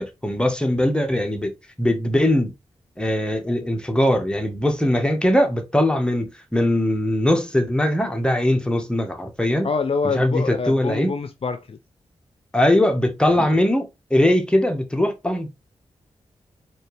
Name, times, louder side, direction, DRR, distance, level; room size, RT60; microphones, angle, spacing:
voice 1, 0.0-1.5 1.8-2.5 3.0-9.7 10.0-11.1 12.5-15.5, left 1 dB, 5° left, 1.4 m, -21 dB
voice 2, 9.6-11.8 13.3-13.6, left 5 dB, 50° left, 0.6 m, -26 dB
4.4 x 2.9 x 3.3 m
supercardioid pair, 40°, 12 cm